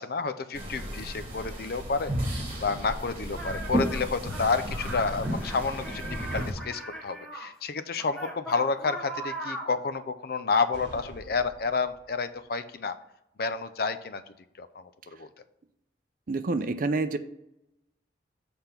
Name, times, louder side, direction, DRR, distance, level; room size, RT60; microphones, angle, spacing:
voice 1, 0.0-6.1 6.3-13.0 13.4-14.2 14.6-15.3, left 4 dB, 55° left, 11 dB, 0.5 m, -30 dB
sound 1, 0.5-6.5, equal, 30° right, 1.5 m, -33 dB
sound 2, 3.3-7.5 8.0-9.8, right 1 dB, 5° left, 1.0 m, -40 dB
sound 3, 10.7-12.4, right 1 dB, 85° right, 0.9 m, -47 dB
voice 2, 16.3-17.2, right 3 dB, 50° right, 11 dB, 0.5 m, -27 dB
7.8 x 3.5 x 5.7 m, 0.86 s
head